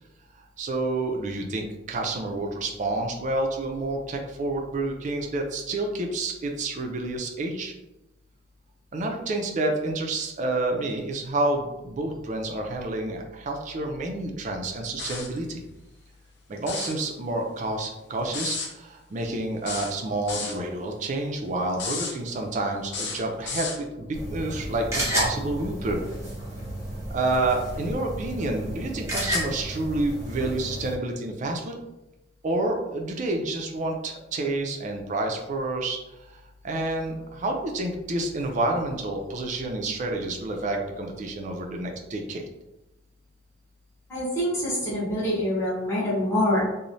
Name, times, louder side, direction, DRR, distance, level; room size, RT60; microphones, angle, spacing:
voice 1, 0.6-7.7 8.9-15.6 16.5-18.6 19.1-26.0 27.1-31.7 32.4-36.0 36.6-42.4, right 2 dB, 40° right, 2 dB, 0.4 m, -29 dB
sound 1, 15.0-15.4 16.6-17.0 18.3-18.7 19.6-20.6 21.7-22.2 22.9-23.8, left 4 dB, 60° left, 0.5 m, -32 dB
sound 2, 24.1-30.9, equal, 15° right, 0.8 m, -32 dB
voice 2, 44.1-46.6, left 1 dB, 15° left, -10 dB, 0.9 m, -25 dB
3.0 x 2.0 x 2.6 m, 0.98 s
head